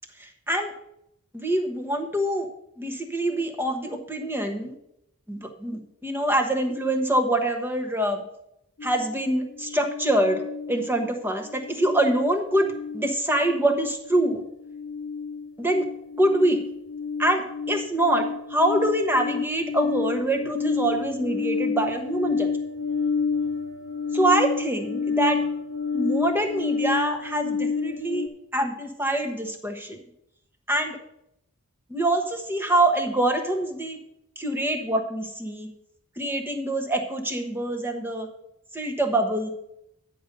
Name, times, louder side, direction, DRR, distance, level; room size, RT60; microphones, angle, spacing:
voice 1, 0.2-0.7 1.3-2.5 2.8-4.7 5.3-8.2 8.8-10.4 10.7-12.7 12.9-14.4 15.6-15.8 16.2-16.6 17.2-22.5 24.1-25.4 25.9-28.3 28.5-30.0 30.7-31.0 31.9-34.0 34.4-35.7 36.2-38.3 38.7-39.5, right 1 dB, 10° right, 4 dB, 1.2 m, -25 dB
sound 1, 8.8-11.2 11.4-28.3, left 5 dB, 60° left, 0.8 m, -30 dB
9.8 x 5.3 x 6.6 m, 0.77 s
head